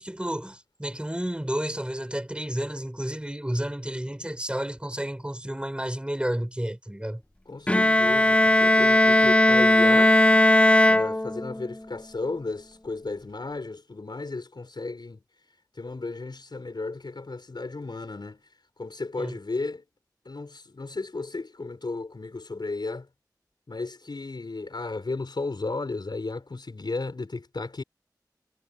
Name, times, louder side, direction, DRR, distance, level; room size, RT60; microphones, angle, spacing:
voice 1, 0.0-7.2 19.2-19.4, right 1 dB, 15° right, 5.2 m, -31 dB
voice 2, 7.5-10.2 10.9-15.2 15.7-18.4 18.8-19.8 20.2-23.1 23.7-27.8, left 3 dB, 80° left, 5.0 m, -34 dB
Bowed string instrument, 7.7-11.7, left 1 dB, 15° left, 0.7 m, -18 dB
wide cardioid pair, 60°, 7 cm